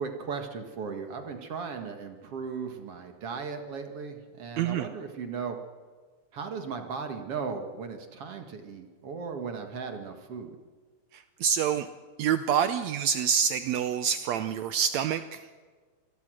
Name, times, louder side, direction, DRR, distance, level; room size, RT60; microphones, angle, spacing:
voice 1, 0.0-5.6 6.3-10.6, right 5 dB, 55° right, 5 dB, 2.6 m, -37 dB
voice 2, 4.6-4.9 11.1-11.9 12.2-15.5, right 8 dB, 75° right, 10 dB, 2.0 m, -27 dB
27.0 x 21.5 x 6.4 m, 1.5 s
omnidirectional pair, 3.3 m